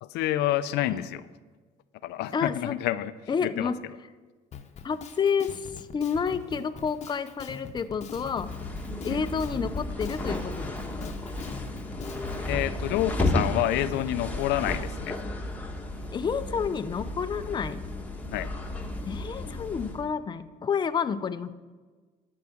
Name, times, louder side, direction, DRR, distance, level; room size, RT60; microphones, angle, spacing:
voice 1, 0.0-1.2 2.0-3.1 3.4-3.7 9.1-9.2 12.5-15.2 18.3-18.5, left 13 dB, 85° left, 13 dB, 0.4 m, -28 dB
voice 2, 2.3-2.8 3.3-3.8 4.8-5.7 5.9-8.5 9.0-11.1 16.1-17.8 19.1-21.5, left 6 dB, 25° left, 11 dB, 0.5 m, -30 dB
Drum kit, 4.5-12.4, left 6 dB, 40° left, 0.9 m, -43 dB
sound 1, 8.3-20.1, left 2 dB, 10° left, 1.2 m, -33 dB
13.0 x 4.7 x 7.1 m, 1.4 s
cardioid pair, 110°, 17 cm